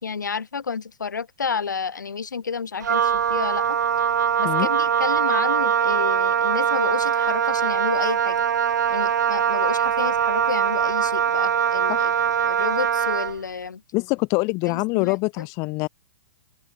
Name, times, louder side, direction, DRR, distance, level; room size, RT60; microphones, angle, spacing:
voice 1, 0.0-3.8 4.4-8.4 8.9-12.1 12.4-13.8 14.6-15.5, left 5 dB, 85° left, 2.1 m, -30 dB
Wind instrument woodwind instrument, 2.8-13.4, right 8 dB, 75° right, 0.8 m, -22 dB
voice 2, 13.9-15.9, left 27 dB, 35° left, 0.4 m, -24 dB
open air
hypercardioid pair, 115°, 10 cm